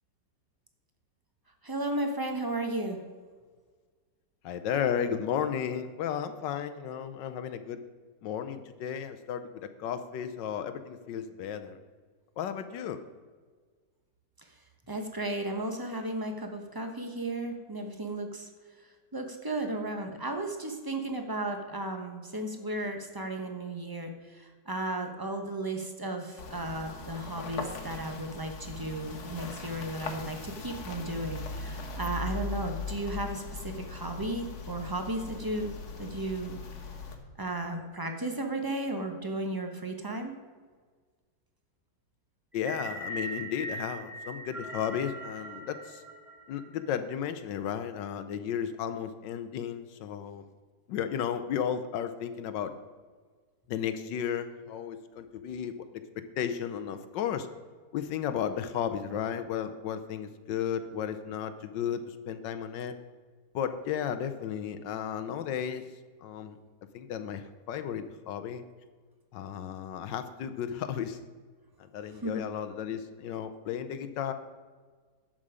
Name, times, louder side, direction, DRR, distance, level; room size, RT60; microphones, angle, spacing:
voice 1, 1.6-3.0 14.9-18.5 19.1-35.7 36.0-36.6 37.4-40.3 72.2-72.4, right 2 dB, 20° right, 5 dB, 0.7 m, -34 dB
voice 2, 4.4-7.8 8.2-11.8 12.4-13.0 42.5-46.0 46.5-50.4 50.9-52.7 53.7-57.5 57.9-62.9 63.5-65.8 66.2-66.6 66.9-68.6 69.3-71.2 71.8-74.3, left 8 dB, 75° left, 10 dB, 1.3 m, -34 dB
sound 1, 26.4-37.2, left 4 dB, 60° left, 1.6 m, -40 dB
sound 2, 42.5-46.9, right 2 dB, ahead, 1.9 m, -40 dB
11.5 x 7.6 x 5.0 m, 1.5 s
omnidirectional pair, 2.0 m